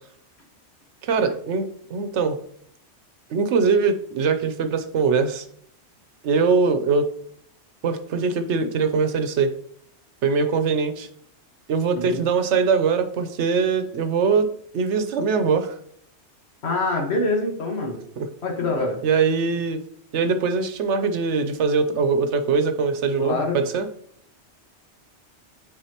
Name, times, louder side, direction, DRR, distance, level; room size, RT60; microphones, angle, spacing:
voice 1, 1.0-2.4 3.3-5.4 6.2-7.1 7.8-9.5 10.2-11.1 11.7-14.5 14.7-15.7 18.2-18.3 19.0-19.8 20.1-23.9, right 5 dB, 80° right, 9 dB, 1.0 m, -22 dB
voice 2, 16.6-18.0 18.4-18.9 23.2-23.6, left 2 dB, 65° left, 1 dB, 1.6 m, -25 dB
8.8 x 4.2 x 2.9 m, 0.65 s
omnidirectional pair, 1.2 m